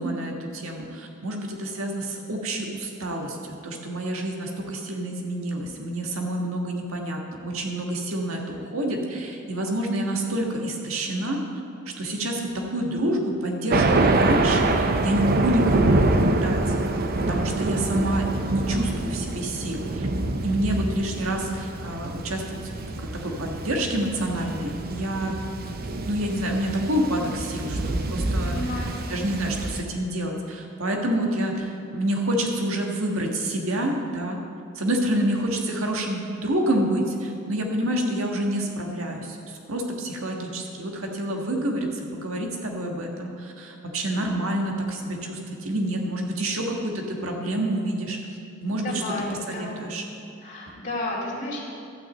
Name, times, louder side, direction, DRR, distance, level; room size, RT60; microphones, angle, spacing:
voice 1, 0.0-11.4 12.0-16.7 17.3-20.1 20.4-22.6 23.0-25.4 26.0-28.6 29.1-34.4 34.7-48.9 49.5-50.0, right 1 dB, 85° right, 1 dB, 1.6 m, -28 dB
Thunder, 13.7-29.8, right 2 dB, 50° right, 0.7 m, -26 dB
voice 2, 18.7-19.1 28.4-29.0 48.8-49.9 50.4-51.6, left 1 dB, 35° left, -6 dB, 2.3 m, -32 dB
12.5 x 6.2 x 8.0 m, 2.5 s
head